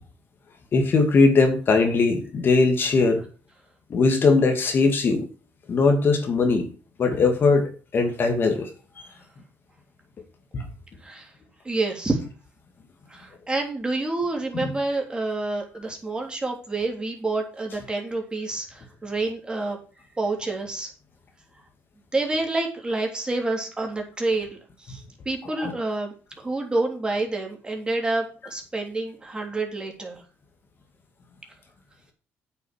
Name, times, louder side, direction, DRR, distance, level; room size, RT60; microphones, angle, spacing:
voice 1, 0.7-3.2 3.9-5.3 5.7-6.7 7.0-8.7 9.0-9.1 10.5-10.7 14.6-14.7 25.6-25.7, left 3 dB, 45° left, 2.3 m, -20 dB
voice 2, 11.6-12.2 13.1-19.8 20.2-20.9 22.1-30.2, right 2 dB, 20° right, 3.4 m, -28 dB
8.5 x 7.0 x 6.3 m
cardioid pair, 95°, 5 cm